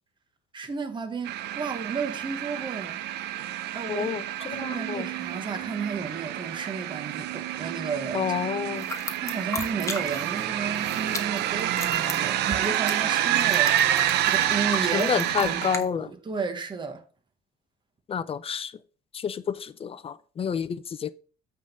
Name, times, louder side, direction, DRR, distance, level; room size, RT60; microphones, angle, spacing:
voice 1, 0.5-3.0 3.7-4.1 4.4-8.2 9.2-13.9 14.2-17.0, right 5 dB, 30° right, 1.2 m, -33 dB
sound 1, 1.3-15.8, right 12 dB, 80° right, 0.6 m, -28 dB
voice 2, 3.9-5.1 8.1-8.9 14.9-16.1 18.1-18.7 19.1-21.1, left 7 dB, 35° left, 0.5 m, -29 dB
sound 2, 8.8-10.4 10.7-15.8, left 3 dB, 20° left, 1.1 m, -36 dB
8.5 x 3.8 x 5.3 m
cardioid pair, 110°, 17 cm